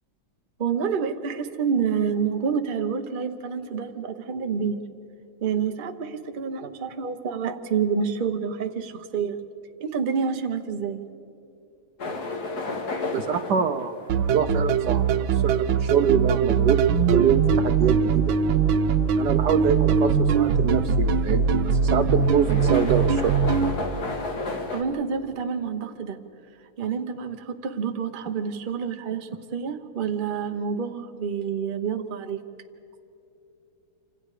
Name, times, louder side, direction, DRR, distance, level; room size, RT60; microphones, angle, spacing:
voice 1, 0.6-4.8 5.4-9.4 9.8-11.0 24.7-26.2 26.8-32.4, right 6 dB, 35° right, 6 dB, 0.9 m, -28 dB
sound 1, 12.0-24.8, left 3 dB, 50° left, 2.4 m, -34 dB
voice 2, 13.1-14.0 14.3-15.0 15.3-16.8 17.1-18.4 19.2-23.3, right 7 dB, 65° right, 9 dB, 1.2 m, -25 dB
sound 2, 14.1-23.7, right 6 dB, 80° right, 1.7 m, -21 dB
28.0 x 26.0 x 5.0 m, 2.8 s
omnidirectional pair, 2.1 m